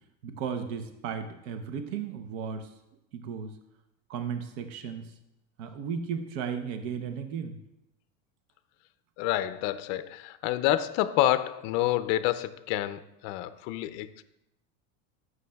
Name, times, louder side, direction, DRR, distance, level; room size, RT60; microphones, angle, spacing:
voice 1, 0.2-2.7 3.1-3.6 4.1-5.1 5.6-7.6, right 7 dB, 75° right, 7 dB, 0.8 m, -35 dB
voice 2, 9.2-14.1, left 13 dB, 55° left, 12 dB, 0.5 m, -28 dB
12.5 x 6.4 x 2.2 m, 0.87 s
cardioid pair, 150°, 38 cm